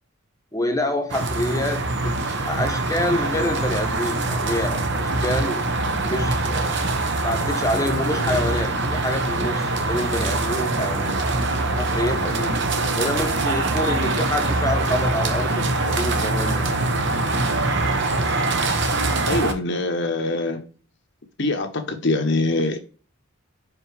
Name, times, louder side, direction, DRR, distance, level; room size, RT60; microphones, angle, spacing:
voice 1, 0.5-5.7 6.0-6.7 7.2-11.2 11.8-16.7, left 1 dB, 15° left, 0.9 m, -27 dB
sound 1, 1.1-19.5, right 2 dB, 55° right, 0.9 m, -23 dB
voice 2, 19.3-20.6 21.4-22.8, left 2 dB, 55° left, 1.0 m, -23 dB
5.6 x 5.1 x 3.3 m
head